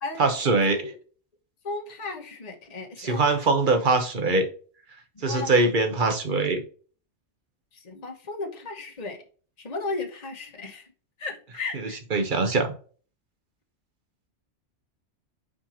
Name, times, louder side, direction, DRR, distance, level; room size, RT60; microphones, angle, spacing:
voice 1, 0.2-0.9 3.0-4.5 5.2-6.6 11.7-12.7, right 3 dB, 45° right, 7 dB, 1.2 m, -23 dB
voice 2, 1.6-3.2 5.3-5.5 7.7-9.2 9.6-10.9 11.2-12.0, left 3 dB, 35° left, 1 dB, 1.2 m, -35 dB
5.1 x 4.5 x 4.2 m, 0.40 s
omnidirectional pair, 1.2 m